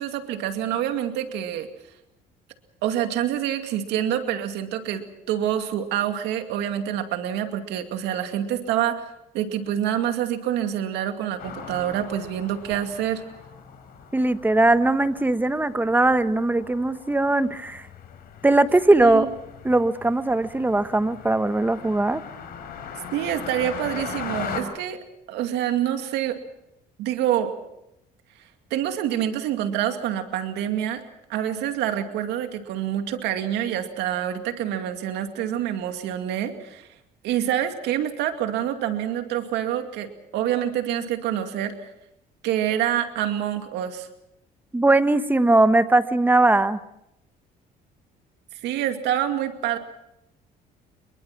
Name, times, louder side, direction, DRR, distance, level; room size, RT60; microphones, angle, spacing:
voice 1, 0.0-1.7 2.8-9.1 9.3-13.2 19.0-19.3 23.1-25.0 25.3-26.4 27.0-27.5 28.7-31.0 31.3-36.9 37.2-41.9 42.4-44.1 48.6-49.8, right 10 dB, 85° right, 7 dB, 2.4 m, -26 dB
sound 1, 11.4-24.6, left 7 dB, 65° left, 4.4 m, -39 dB
voice 2, 14.1-17.9 18.4-19.3 19.6-22.2 44.7-46.8, right 2 dB, 10° right, 12 dB, 1.1 m, -20 dB
25.5 x 22.5 x 6.0 m, 0.85 s
cardioid pair, 110°, 17 cm